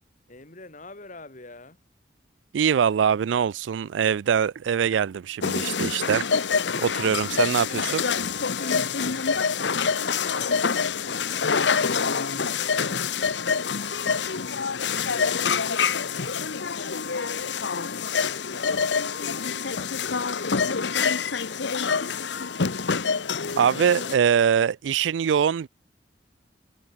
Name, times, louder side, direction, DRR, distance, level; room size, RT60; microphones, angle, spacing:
voice 1, 0.3-1.8 8.5-15.5 16.0-22.5, left 2 dB, 45° left, 3.9 m, -49 dB
voice 2, 2.5-6.2 6.8-8.0 23.6-25.7, right 7 dB, 85° right, 0.4 m, -23 dB
sound 1, 5.4-24.1, left 5 dB, 75° left, 1.0 m, -26 dB
head